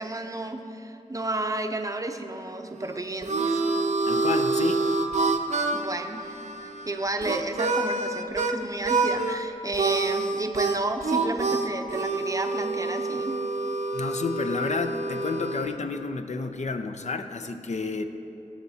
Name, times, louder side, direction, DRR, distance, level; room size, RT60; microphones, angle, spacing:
voice 1, 0.0-3.7 5.7-6.3 6.6-13.4, right 2 dB, 25° right, 6 dB, 0.6 m, -32 dB
Harmonica, 2.8-8.6 8.8-9.4 9.7-15.8, right 3 dB, 60° right, 0.6 m, -27 dB
voice 2, 4.1-4.9 13.9-18.0, left 4 dB, 55° left, 7 dB, 0.6 m, -30 dB
18.5 x 7.2 x 2.8 m, 3.0 s
cardioid pair, 60°, 14 cm